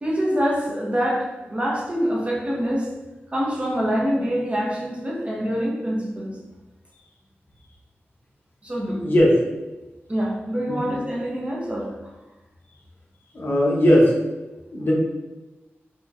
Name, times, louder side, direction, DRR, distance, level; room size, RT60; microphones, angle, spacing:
voice 1, 0.0-2.9 3.3-6.4 8.6-9.0 10.1-11.9, equal, 30° right, -3 dB, 0.8 m, -25 dB
voice 2, 9.0-9.4 10.7-10.9 13.3-14.1 14.7-14.9, equal, 55° left, -4 dB, 1.0 m, -18 dB
4.7 x 2.9 x 2.5 m, 1.1 s
wide cardioid pair, 105°, 4 cm